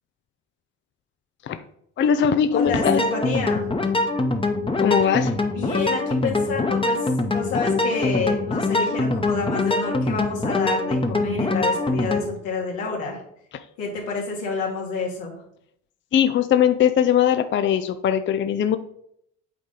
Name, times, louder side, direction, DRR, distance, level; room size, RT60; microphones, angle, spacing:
voice 1, 2.0-3.0 4.8-5.3 16.1-18.8, left 8 dB, 35° left, 10 dB, 0.5 m, -20 dB
voice 2, 2.5-3.7 5.4-13.2 13.8-15.4, left 4 dB, 75° left, -2 dB, 2.2 m, -29 dB
sound 1, 2.7-12.3, left 2 dB, 15° left, 1.0 m, -23 dB
8.2 x 3.9 x 3.9 m, 0.73 s
hypercardioid pair, 60°, 35 cm